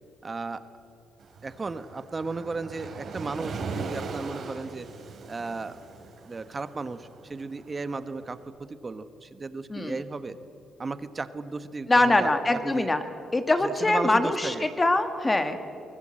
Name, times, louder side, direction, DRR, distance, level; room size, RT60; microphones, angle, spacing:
voice 1, 0.2-0.7 1.4-4.9 5.3-5.8 6.3-8.4 8.7-10.4 10.8-12.3 12.6-12.9 13.6-14.6, right 3 dB, 30° right, 12 dB, 1.2 m, -35 dB
Waves surf, 1.2-8.3, right 4 dB, 55° right, 3.2 m, -39 dB
voice 2, 11.9-13.0 13.3-15.7, left 2 dB, 20° left, 8 dB, 1.9 m, -23 dB
24.5 x 19.0 x 7.6 m, 2.6 s
cardioid pair, 90°, 0 cm